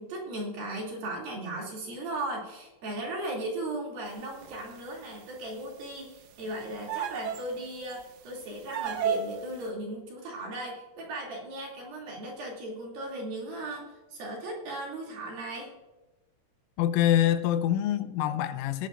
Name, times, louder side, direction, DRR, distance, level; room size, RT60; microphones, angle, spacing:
voice 1, 0.0-13.8 14.1-15.7, right 1 dB, 50° right, 4.0 m, -37 dB
sound 1, 4.4-4.8 6.9-7.5 7.9-8.0 8.7-9.4, right 8 dB, 85° right, 3.4 m, -31 dB
voice 2, 16.8-18.9, left 11 dB, 85° left, 3.2 m, -25 dB
20.0 x 10.0 x 2.5 m
omnidirectional pair, 5.7 m